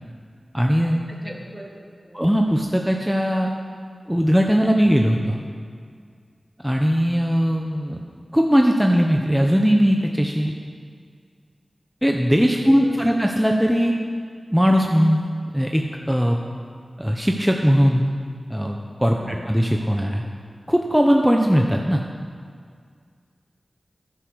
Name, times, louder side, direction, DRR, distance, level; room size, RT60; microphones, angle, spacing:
voice 1, 0.5-1.0 1.2-1.3 2.1-3.5 4.1-5.4 6.6-8.0 8.3-10.5 12.0-13.9 14.5-16.4 17.0-18.1 18.5-20.2 20.7-22.0, equal, 5° right, 1 dB, 0.9 m, -19 dB
voice 2, 1.1-2.3 12.6-13.2 19.1-19.5, right 1 dB, 40° right, -2 dB, 2.7 m, -39 dB
10.5 x 10.0 x 6.3 m, 2.1 s
cardioid pair, 45°, 0 cm